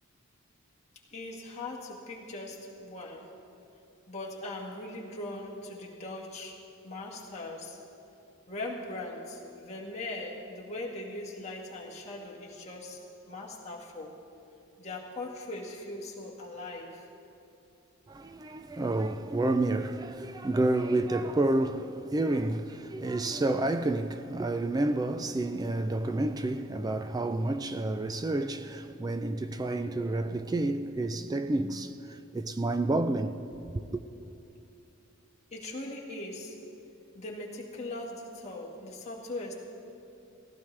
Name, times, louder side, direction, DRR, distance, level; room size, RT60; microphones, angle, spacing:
voice 1, 1.1-3.3 4.1-7.8 8.5-14.1 14.8-17.1 35.5-36.6 37.1-39.5, left 2 dB, 30° left, 1.7 m, -40 dB
voice 2, 18.1-33.4 33.9-34.0, right 2 dB, 20° right, 0.3 m, -29 dB
18.0 x 15.5 x 3.3 m
head